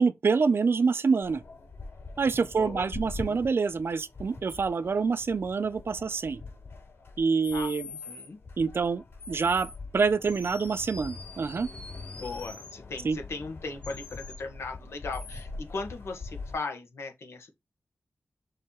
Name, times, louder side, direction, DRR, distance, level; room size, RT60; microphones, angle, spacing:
voice 1, 0.0-1.4 2.2-6.4 7.2-7.9 8.6-11.7 13.0-13.2, right 5 dB, 60° right, 0.7 m, -26 dB
sound 1, 1.2-16.5, left 3 dB, 65° left, 4.4 m, -44 dB
voice 2, 2.4-2.9 3.1-3.4 7.5-8.4 12.1-17.5, left 3 dB, 85° left, 1.7 m, -38 dB
sound 2, 7.4-8.3 9.2-9.8 10.2-12.8 13.8-14.4 15.1-15.4, left 4 dB, 30° left, 2.1 m, -44 dB
6.5 x 3.4 x 4.5 m
wide cardioid pair, 70°, 4 cm